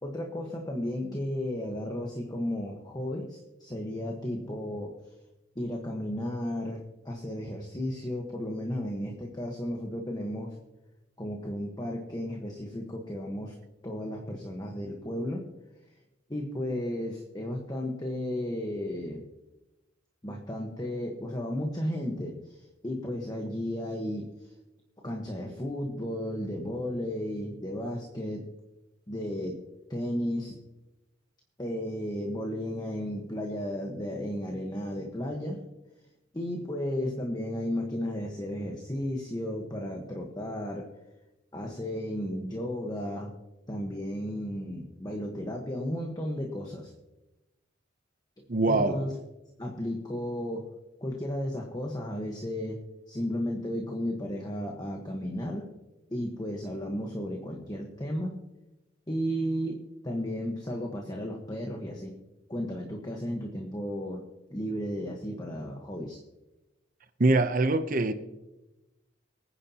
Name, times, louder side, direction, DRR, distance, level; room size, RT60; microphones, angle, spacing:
voice 1, 0.0-4.9 5.5-10.5 11.2-13.5 13.8-15.4 16.3-19.2 20.2-24.5 25.0-28.4 29.1-29.6 29.9-30.5 31.6-35.6 36.3-40.9 41.5-43.3 43.7-46.9 48.7-49.1 49.6-50.7 51.0-52.8 53.1-55.7 56.1-58.4 59.1-59.8 60.0-62.1 62.5-64.2 64.5-66.2, equal, 20° left, 1.3 m, -34 dB
voice 2, 48.5-49.0 67.2-68.1, right 2 dB, 45° right, 0.7 m, -23 dB
24.0 x 9.8 x 2.9 m
head